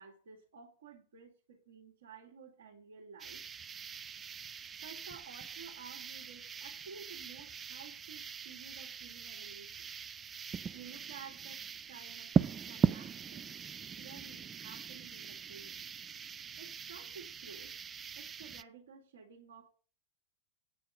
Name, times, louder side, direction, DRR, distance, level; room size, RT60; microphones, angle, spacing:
voice 1, 0.0-3.4 4.8-10.0 10.7-12.4 12.7-13.5 14.0-16.1 16.6-17.7 18.2-19.7, right 6 dB, 60° right, -2 dB, 2.0 m, -53 dB
sound 1, 3.2-18.6, right 7 dB, 20° right, 0.5 m, -39 dB
9.3 x 5.6 x 8.3 m, 0.36 s
figure-of-eight pair, 90°, 0 cm